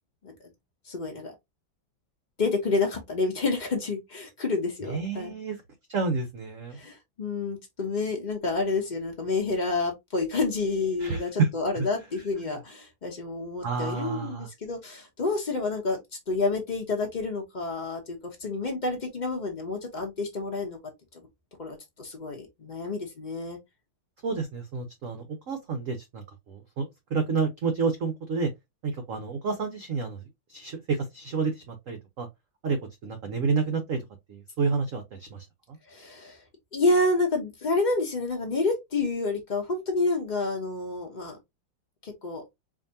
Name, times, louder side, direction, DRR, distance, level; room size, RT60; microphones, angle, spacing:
voice 1, 0.9-1.3 2.4-5.3 6.7-16.0 16.3-20.8 21.1-21.2 21.6-23.6 35.9-36.4 36.7-41.4 42.0-42.4, left 3 dB, 80° left, 0.4 m, -29 dB
voice 2, 4.8-5.6 5.9-6.8 11.0-11.5 11.7-11.9 12.2-12.5 13.6-14.5 24.2-28.5 28.8-30.2 30.5-32.3 32.6-32.8 33.0-34.0 34.3-35.8, right 5 dB, 70° right, 0.7 m, -30 dB
4.8 x 2.6 x 2.7 m
omnidirectional pair, 2.2 m